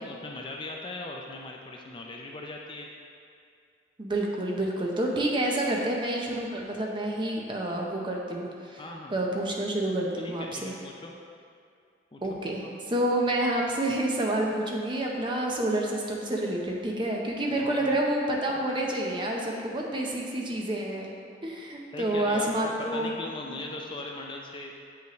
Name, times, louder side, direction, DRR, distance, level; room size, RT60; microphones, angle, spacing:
voice 1, 0.0-2.9 8.8-9.1 10.2-11.1 12.1-12.7 17.5-17.9 21.9-24.7, left 2 dB, 25° left, 0 dB, 0.4 m, -39 dB
voice 2, 4.0-8.8 9.1-10.7 12.2-12.6 12.9-21.1 21.4-23.1 23.5-23.6, right 1 dB, 25° right, -1 dB, 0.7 m, -28 dB
7.5 x 5.6 x 3.0 m, 2.4 s
head